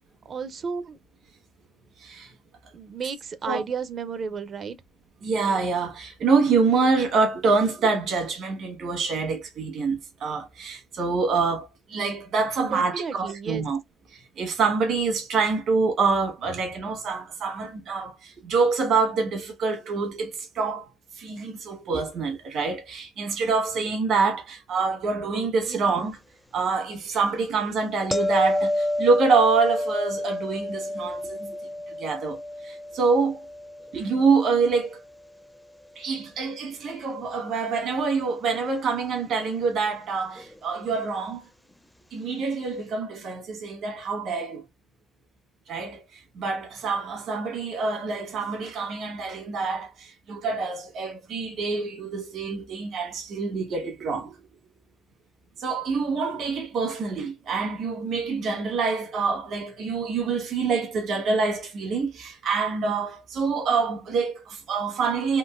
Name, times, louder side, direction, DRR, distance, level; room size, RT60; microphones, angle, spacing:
voice 1, 0.3-1.0 2.7-4.7 12.6-13.6 25.6-25.8, right 5 dB, 55° right, 0.5 m, -33 dB
voice 2, 2.0-2.3 3.4-3.6 5.2-13.8 14.1-20.9 21.1-26.2 26.5-31.6 32.0-33.4 33.9-35.0 35.9-41.4 42.1-44.6 45.7-54.3 55.6-65.4, right 4 dB, 75° right, 1.4 m, -26 dB
sound 1, 28.1-35.1 40.4-40.5, left 1 dB, 5° left, 0.4 m, -30 dB
3.7 x 2.7 x 2.4 m
cardioid pair, 90°, 0 cm